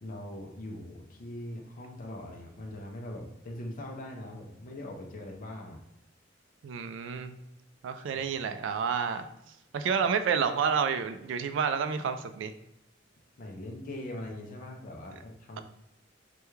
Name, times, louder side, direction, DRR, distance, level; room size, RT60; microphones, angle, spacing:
voice 1, 0.0-5.8 7.9-8.3 13.4-15.6, left 1 dB, 45° left, 0 dB, 0.5 m, -41 dB
voice 2, 6.6-7.3 7.8-9.3 9.7-12.5, right 6 dB, 70° right, 9 dB, 0.3 m, -29 dB
3.3 x 2.3 x 3.0 m, 0.86 s
head